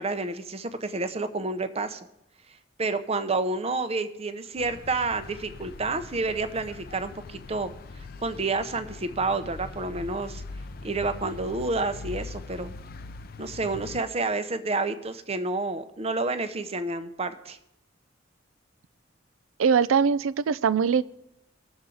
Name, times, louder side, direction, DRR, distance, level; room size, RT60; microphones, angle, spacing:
voice 1, 0.0-2.1 2.8-10.4 10.8-12.8 13.4-17.6, right 3 dB, 30° right, 10 dB, 0.7 m, -29 dB
sound 1, 4.6-14.0, left 3 dB, 50° left, 0.5 m, -42 dB
voice 2, 19.6-21.0, right 6 dB, 85° right, 17 dB, 0.4 m, -22 dB
20.0 x 7.1 x 3.9 m, 0.85 s
head